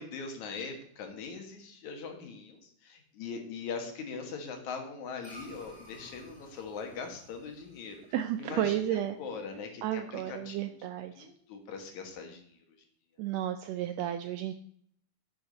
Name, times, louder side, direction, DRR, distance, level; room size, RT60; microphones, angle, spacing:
voice 1, 0.0-8.0 8.4-10.7 11.2-12.6, left 5 dB, 75° left, 4 dB, 2.8 m, -41 dB
sound 1, 5.2-9.8, right 1 dB, 15° right, 1.6 m, -55 dB
voice 2, 8.1-9.2 9.8-11.3 13.2-14.5, right 11 dB, 80° right, 8 dB, 1.5 m, -32 dB
10.5 x 7.0 x 4.0 m, 0.65 s
omnidirectional pair, 3.5 m